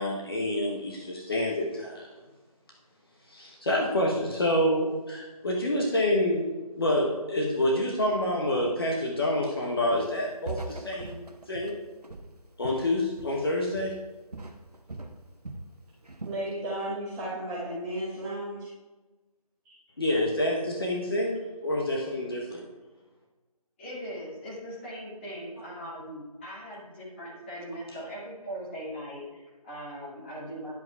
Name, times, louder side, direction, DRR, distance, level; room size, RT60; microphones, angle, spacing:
voice 1, 0.0-2.0 3.3-11.8 12.6-13.9 20.0-22.6, left 1 dB, 40° left, -2 dB, 1.0 m, -27 dB
Walk footsteps, 9.9-10.2 10.5-13.5 13.7-14.1 14.3-15.7 16.1-16.4, right 2 dB, 90° right, 0.9 m, -41 dB
voice 2, 16.2-18.7 19.6-19.8, right 1 dB, 10° right, -11 dB, 1.3 m, -34 dB
voice 3, 23.8-30.7, equal, 20° left, -7 dB, 1.9 m, -40 dB
10.5 x 7.6 x 2.3 m, 1.2 s
figure-of-eight pair, 155°, 19 cm